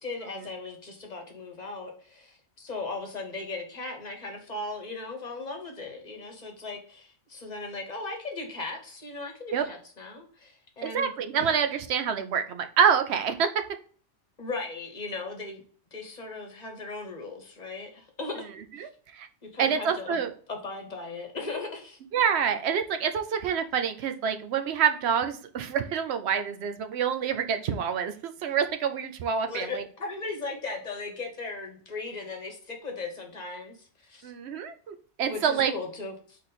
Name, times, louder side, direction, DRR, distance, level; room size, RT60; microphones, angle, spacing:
voice 1, 0.0-11.1 11.4-11.5 14.4-15.6 15.9-18.5 18.8-18.9 19.5-20.2 20.5-22.0 29.5-34.3 35.3-36.4, left 3 dB, 35° left, 2 dB, 1.1 m, -37 dB
voice 2, 10.8-13.5 18.8-19.3 19.6-20.3 22.1-29.8 34.2-35.7, right 7 dB, 65° right, 8 dB, 0.8 m, -27 dB
4.1 x 3.2 x 4.0 m, 0.44 s
omnidirectional pair, 1.2 m